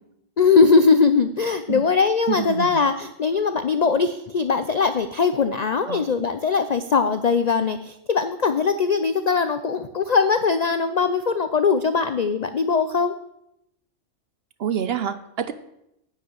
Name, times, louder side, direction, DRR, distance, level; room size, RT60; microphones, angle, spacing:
voice 1, 0.4-13.1, left 5 dB, 65° left, 10 dB, 0.4 m, -20 dB
voice 2, 2.3-2.8 5.9-6.1 14.6-15.5, right 8 dB, 60° right, 11 dB, 0.8 m, -27 dB
9.9 x 5.7 x 7.9 m, 0.81 s
omnidirectional pair, 1.3 m